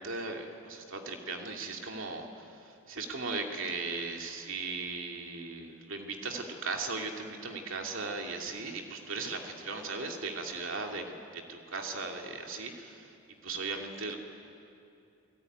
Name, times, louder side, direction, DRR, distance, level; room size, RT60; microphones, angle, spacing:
voice 1, 0.0-13.1 13.4-14.2, right 3 dB, 60° right, 2 dB, 2.8 m, -37 dB
28.5 x 19.0 x 9.5 m, 2.6 s
head